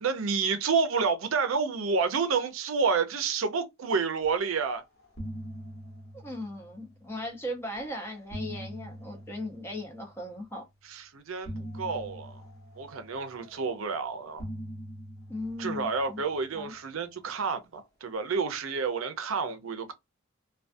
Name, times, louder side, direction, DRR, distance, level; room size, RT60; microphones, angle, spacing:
voice 1, 0.0-4.8 10.9-12.4 12.8-14.4 15.6-19.9, right 5 dB, 75° right, 0.5 m, -29 dB
sound 1, 4.5-4.7 5.0-7.3 8.0-10.4 11.4-13.9 14.4-17.0, equal, 55° left, 1.0 m, -43 dB
voice 2, 6.1-10.7 15.3-16.2 16.5-16.7, left 1 dB, 10° left, 0.6 m, -37 dB
2.3 x 2.2 x 2.5 m
head